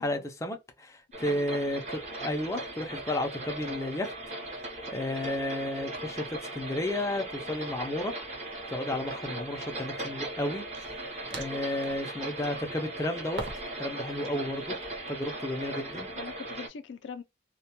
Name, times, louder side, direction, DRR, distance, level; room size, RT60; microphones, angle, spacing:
voice 1, 0.0-4.1 4.9-8.1 8.7-10.6 11.3-13.4 13.8-14.7 15.1-16.1, left 1 dB, 15° left, 0.4 m, -32 dB
sound 1, 1.1-16.7, right 1 dB, 35° right, 0.7 m, -38 dB
sound 2, 8.4-8.6 10.7-12.1 13.4-13.9 14.1-15.0, right 2 dB, 75° right, 0.7 m, -42 dB
voice 2, 16.2-17.2, left 5 dB, 85° left, 0.3 m, -43 dB
2.2 x 2.1 x 2.7 m
head